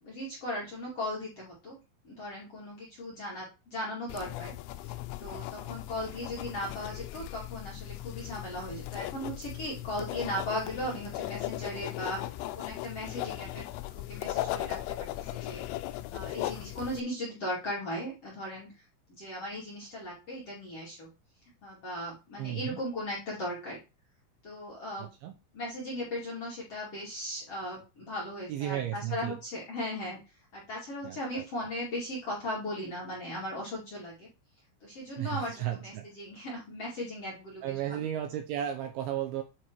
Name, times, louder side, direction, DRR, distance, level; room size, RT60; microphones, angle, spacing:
voice 1, 0.0-1.8 2.0-4.5 5.2-15.7 16.1-18.7 19.1-21.1 21.6-23.8 24.4-25.1 25.5-30.2 30.5-34.3 34.8-38.1, left 1 dB, 40° left, -5 dB, 2.2 m, -37 dB
sound 1, 4.1-17.0, left 15 dB, 85° left, 3.0 m, -38 dB
voice 2, 22.4-22.8 25.0-25.3 28.5-29.4 31.0-31.5 35.2-36.1 37.6-39.4, right 12 dB, 75° right, 4 dB, 2.9 m, -34 dB
10.0 x 3.5 x 4.6 m, 0.27 s
omnidirectional pair, 6.0 m